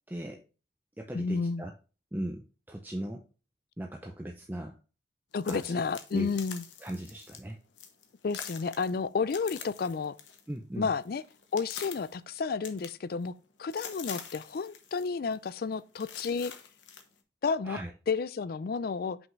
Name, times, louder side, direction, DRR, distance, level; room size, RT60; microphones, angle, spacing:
voice 1, 0.1-0.4 1.0-1.7 2.1-3.3 3.8-4.8 5.4-5.8 6.1-6.3 6.8-7.6 10.5-10.9 17.6-17.9, right 1 dB, 10° right, 0.5 m, -38 dB
voice 2, 1.1-1.6 5.3-6.6 8.2-10.1 10.8-11.2 11.5-13.3 13.6-16.5 17.4-17.8 18.1-19.2, left 5 dB, 55° left, 0.4 m, -31 dB
sound 1, 5.3-7.4 7.8-8.0 8.3-10.5 10.8-12.2 12.6-13.4 13.7-15.1 15.3-15.5 15.9-17.0, left 7 dB, 80° left, 1.0 m, -45 dB
5.9 x 5.4 x 3.2 m
head